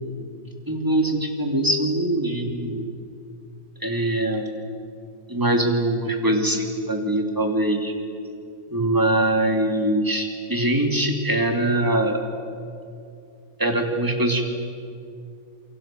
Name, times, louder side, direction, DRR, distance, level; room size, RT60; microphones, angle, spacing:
voice 1, 0.7-2.9 3.8-4.6 5.3-7.9 8.7-12.2 13.6-14.5, right 1 dB, 15° right, 2 dB, 2.8 m, -22 dB
28.0 x 23.5 x 7.7 m, 2.5 s
omnidirectional pair, 1.5 m